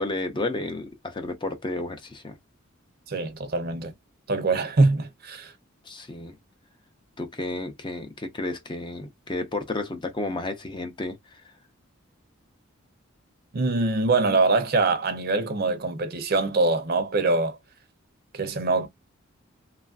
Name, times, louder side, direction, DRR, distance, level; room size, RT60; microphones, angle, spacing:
voice 1, 0.0-2.4 5.8-6.3 7.2-11.4, left 2 dB, 25° left, 0.5 m, -32 dB
voice 2, 3.1-3.9 4.3-5.5 13.5-17.6 18.3-18.9, right 3 dB, 50° right, 0.6 m, -23 dB
3.1 x 2.4 x 2.3 m
head